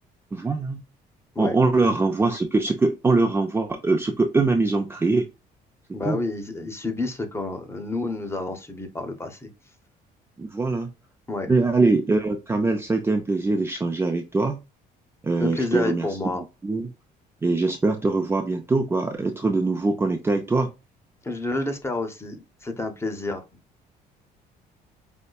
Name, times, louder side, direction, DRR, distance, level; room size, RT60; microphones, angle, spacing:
voice 1, 0.3-0.8 1.4-5.3 6.0-6.2 10.4-10.9 11.5-14.6 15.2-16.1 16.4-16.9 17.4-20.7, right 3 dB, 15° right, 0.4 m, -23 dB
voice 2, 5.9-9.5 11.3-11.5 15.4-16.4 21.2-23.4, left 2 dB, 15° left, 0.9 m, -29 dB
5.3 x 2.1 x 2.3 m
cardioid pair, 110°, 17 cm